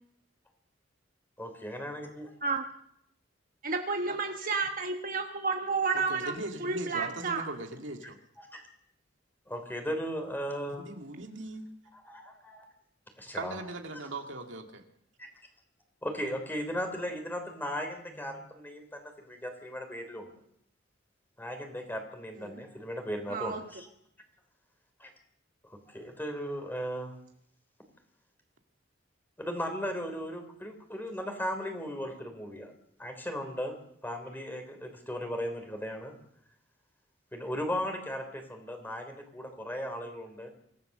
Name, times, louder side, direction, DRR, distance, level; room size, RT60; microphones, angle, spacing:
voice 1, 1.4-2.3 8.4-8.6 9.5-10.9 11.9-12.7 13.2-13.6 15.2-15.3 16.0-20.3 21.4-23.9 25.0-25.1 25.7-27.1 29.4-32.7 33.0-33.7 34.0-36.1 37.3-40.5, equal, 10° left, 5 dB, 3.6 m, -37 dB
voice 2, 3.6-6.3 6.6-7.4 22.4-22.6 23.3-23.6, right 4 dB, 45° right, 4 dB, 1.2 m, -31 dB
voice 3, 5.9-8.2 10.7-11.6 13.3-14.6, right 2 dB, 80° right, 4 dB, 2.1 m, -39 dB
25.0 x 15.5 x 6.7 m, 0.72 s
head